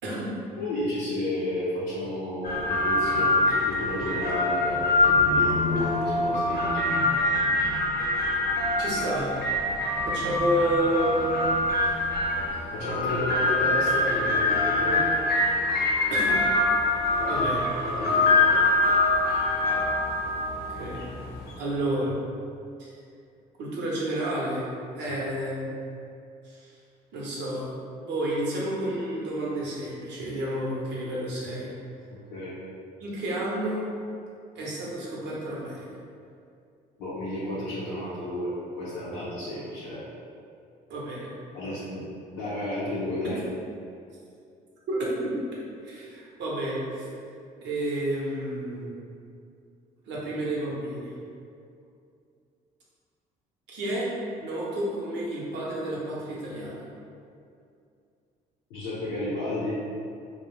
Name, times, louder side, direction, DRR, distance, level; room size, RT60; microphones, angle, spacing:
voice 1, 0.6-6.8 12.7-15.0 16.2-16.3 17.2-17.4 17.8-18.5 25.1-25.2 32.3-32.5 37.0-40.0 41.5-42.1 42.3-43.4 58.7-59.8, left 1 dB, 90° left, -11 dB, 0.6 m, -32 dB
sound 1, 2.4-21.5, left 2 dB, 55° left, 0.7 m, -24 dB
voice 2, 8.8-9.4 10.0-11.2 14.7-15.0 16.1-16.3 17.3-17.7 20.7-21.0 21.6-22.2 22.8-22.9 23.6-24.6 24.9-25.7 26.4-26.7 27.1-27.7 28.0-31.7 33.0-33.9 34.5-35.9 40.9-41.3 41.6-41.8 44.9-45.0 45.2-45.3 45.8-47.1 47.6-48.9 50.1-51.1 53.7-54.1 54.4-56.9, right 1 dB, 70° right, -5 dB, 0.8 m, -30 dB
2.4 x 2.1 x 3.1 m, 2.4 s
supercardioid pair, 65°, 19 cm